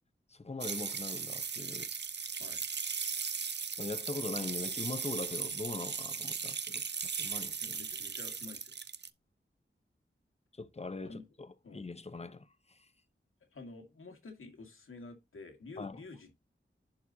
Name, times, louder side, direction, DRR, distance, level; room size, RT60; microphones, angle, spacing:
voice 1, 0.3-1.9 3.8-7.8 10.5-12.9 15.8-16.0, left 3 dB, 30° left, 0.9 m, -41 dB
sound 1, 0.6-9.1, right 6 dB, 55° right, 0.6 m, -37 dB
voice 2, 7.6-8.7 11.0-11.2 11.6-11.9 13.5-16.4, left 3 dB, 90° left, 2.1 m, -49 dB
11.0 x 4.4 x 2.7 m
wide cardioid pair, 75°, 21 cm